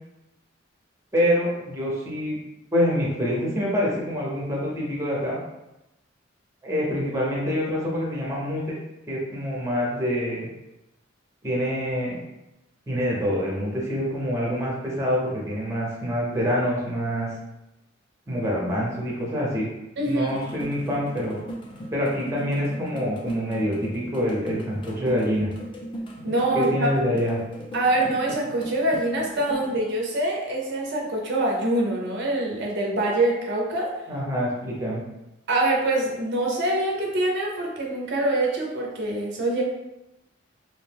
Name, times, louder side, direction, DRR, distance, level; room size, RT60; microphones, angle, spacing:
voice 1, 1.1-2.4 2.7-5.4 6.6-8.8 9.1-10.5 11.4-12.2 12.9-17.3 18.3-19.7 20.0-21.4 21.9-25.5 26.5-27.4 34.1-35.0, equal, 15° right, -4 dB, 0.6 m, -26 dB
voice 2, 20.0-20.3 26.2-26.9 27.7-33.9 35.5-39.6, right 1 dB, 60° right, -1 dB, 0.5 m, -24 dB
sound 1, 20.1-29.8, equal, 25° left, 0.4 m, -38 dB
2.5 x 2.1 x 3.3 m, 0.95 s
head